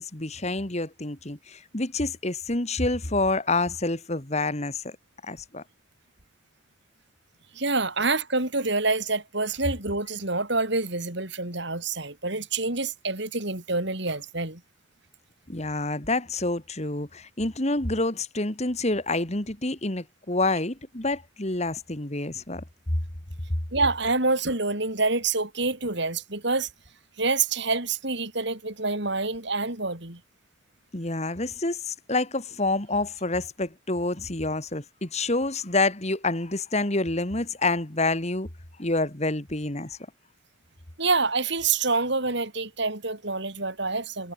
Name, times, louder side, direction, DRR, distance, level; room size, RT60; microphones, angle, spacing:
voice 1, 0.0-4.9 5.2-5.6 15.5-22.6 30.9-38.5 38.8-40.0, left 2 dB, 35° left, 2.3 m, -28 dB
voice 2, 7.5-14.6 23.7-26.7 27.2-30.2 41.0-44.3, right 3 dB, 60° right, 4.6 m, -27 dB
head